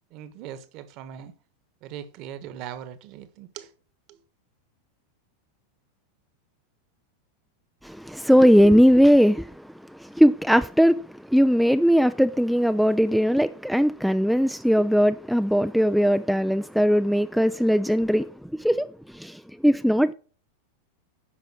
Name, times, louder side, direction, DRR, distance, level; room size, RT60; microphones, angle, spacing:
voice 1, 0.1-1.3 1.8-3.7 4.1-4.2, right 10 dB, 50° right, 1.4 m, -40 dB
voice 2, 7.8-9.6 9.9-18.3 18.6-20.1, equal, ahead, 0.5 m, -19 dB
10.5 x 5.6 x 6.1 m
hypercardioid pair, 90°, 0 cm